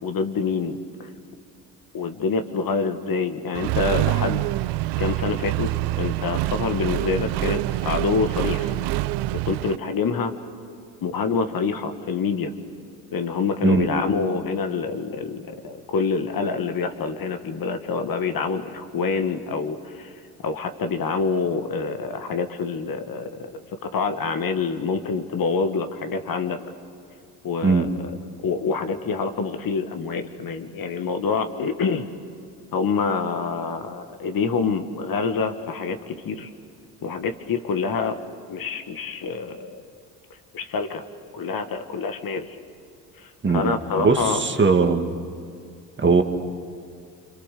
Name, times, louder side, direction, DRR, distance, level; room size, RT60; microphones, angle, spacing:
voice 1, 0.0-1.1 1.9-4.5 5.0-8.7 9.3-10.3 11.0-12.5 13.1-20.1 20.4-23.5 23.8-26.6 27.4-28.1 28.4-32.1 32.7-36.5 37.0-38.2 38.5-39.8 40.5-41.0 41.3-42.5 43.2-44.4, left 5 dB, 45° left, 7 dB, 1.9 m, -26 dB
Accelerating revving vroom, 3.5-9.8, right 18 dB, 55° right, 0.6 m, -26 dB
voice 2, 44.0-45.1 46.0-46.2, right 4 dB, 25° right, 5 dB, 2.2 m, -19 dB
27.0 x 26.0 x 6.8 m, 2.3 s
hypercardioid pair, 60°, 47 cm